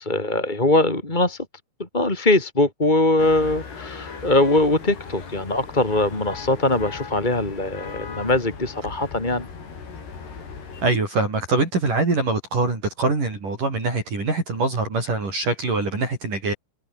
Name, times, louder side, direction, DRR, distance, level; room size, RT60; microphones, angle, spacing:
voice 1, 0.0-1.4 1.8-9.5, left 2 dB, 10° left, 2.4 m, -21 dB
sound 1, 3.2-10.9, left 5 dB, 60° left, 7.7 m, -38 dB
voice 2, 10.8-16.5, right 3 dB, 45° right, 8.4 m, -23 dB
omnidirectional pair, 5.5 m